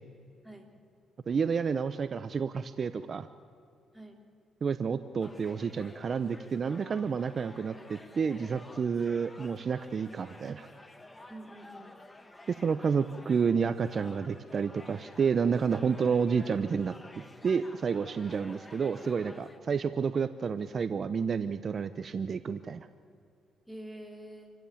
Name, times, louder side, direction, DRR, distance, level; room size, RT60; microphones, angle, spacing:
voice 1, 1.3-3.3 4.6-10.7 12.5-16.9 17.4-22.9, right 6 dB, 45° right, 12 dB, 0.8 m, -30 dB
sound 1, 5.2-19.6, left 2 dB, 15° left, 1.8 m, -51 dB
voice 2, 11.3-12.0 23.7-24.5, right 1 dB, ahead, 3 dB, 3.9 m, -46 dB
28.0 x 15.5 x 8.6 m, 2.3 s
cardioid pair, 90°, 0 cm